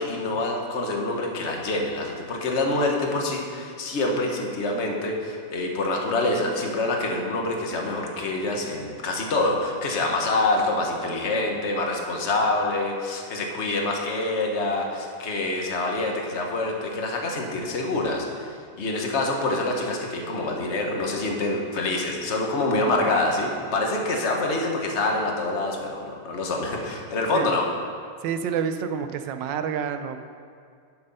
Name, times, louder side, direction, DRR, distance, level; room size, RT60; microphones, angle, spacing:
voice 1, 0.0-27.6, left 2 dB, 40° left, 1 dB, 1.5 m, -26 dB
voice 2, 28.2-30.2, right 7 dB, 85° right, 8 dB, 1.4 m, -28 dB
12.0 x 6.9 x 5.5 m, 2.2 s
omnidirectional pair, 1.9 m